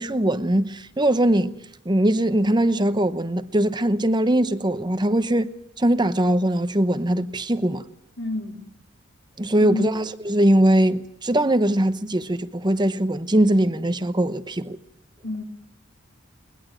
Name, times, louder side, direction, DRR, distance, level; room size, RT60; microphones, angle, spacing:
voice 1, 0.0-1.6 1.9-5.5 5.8-7.8 9.4-14.8, right 1 dB, 20° right, 0.9 m, -21 dB
voice 2, 8.2-8.7 9.6-10.1 15.2-15.4, left 1 dB, 90° left, 3.6 m, -29 dB
22.0 x 21.0 x 9.3 m
head